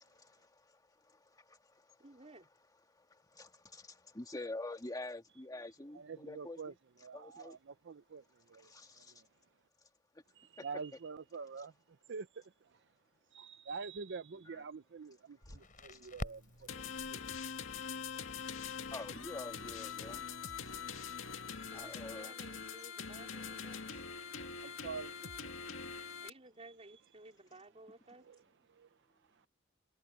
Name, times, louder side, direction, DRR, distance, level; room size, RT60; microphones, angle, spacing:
voice 1, 0.0-2.0 2.9-6.6 7.1-7.6 8.6-9.2 10.6-10.7 14.5-14.6 15.5-15.6 15.9-16.0 18.9-20.6 21.7-22.3, left 2 dB, 20° left, 1.9 m, -47 dB
voice 2, 2.0-2.5 21.7-24.0 26.2-28.3, right 2 dB, 35° right, 4.0 m, -56 dB
voice 3, 5.9-6.7 7.0-9.3 10.3-12.9 13.3-17.5 18.1-18.4 24.3-25.5 28.2-28.4 28.7-29.0 29.3-29.5, right 5 dB, 60° right, 0.6 m, -47 dB
Crackle, 15.4-22.0, left 1 dB, 45° left, 5.2 m, -51 dB
sound 1, 16.7-26.3, left 6 dB, 75° left, 2.2 m, -43 dB
head